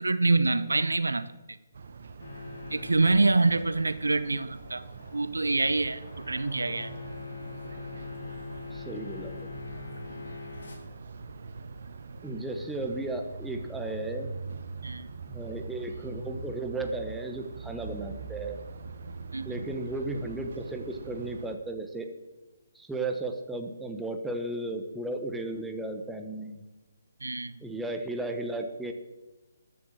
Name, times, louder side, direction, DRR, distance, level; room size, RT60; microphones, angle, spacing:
voice 1, 0.0-1.6 2.7-4.8 5.1-6.9 10.1-10.2 14.8-15.1 19.3-19.6 27.2-27.6, right 3 dB, 75° right, 14 dB, 0.7 m, -26 dB
sound 1, 1.7-21.6, right 4 dB, 55° right, 1.1 m, -43 dB
sound 2, 2.2-10.8, left 4 dB, 55° left, 3.1 m, -43 dB
voice 2, 8.7-9.5 12.2-14.4 15.3-18.6 19.4-22.1 22.7-26.6 27.6-28.9, right 2 dB, 5° right, 4 dB, 1.1 m, -35 dB
13.5 x 7.2 x 6.4 m, 1.1 s
figure-of-eight pair, 140°, 0 cm